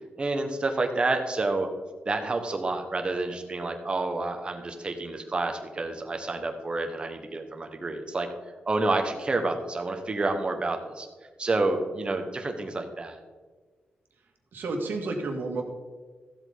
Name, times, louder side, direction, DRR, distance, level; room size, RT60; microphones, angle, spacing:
voice 1, 0.2-1.7 2.0-8.3 8.7-11.1 11.4-13.2, right 2 dB, 30° right, 5 dB, 1.4 m, -29 dB
voice 2, 14.5-15.6, right 3 dB, 80° right, 2 dB, 2.0 m, -31 dB
15.0 x 8.0 x 4.1 m, 1.4 s
wide cardioid pair, 130°, 3 cm